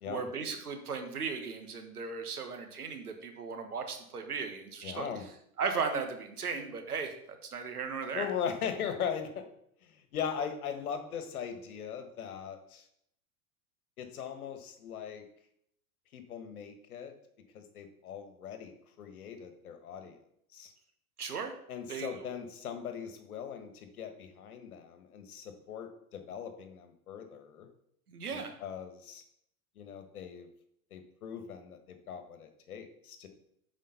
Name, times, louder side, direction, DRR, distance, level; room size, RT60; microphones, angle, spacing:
voice 1, 0.1-5.1 5.6-7.1 7.5-8.3 21.2-21.5 21.9-22.3 28.1-28.5, right 5 dB, 85° right, 6 dB, 1.5 m, -36 dB
voice 2, 4.8-5.2 8.1-9.4 9.8-12.8 14.0-15.2 16.1-17.1 17.5-20.2 20.5-20.7 21.7-27.7 28.3-29.2 29.7-30.5 30.9-33.3, left 7 dB, 75° left, 7 dB, 1.5 m, -40 dB
7.5 x 5.1 x 5.7 m, 0.72 s
hypercardioid pair, 95°, 44 cm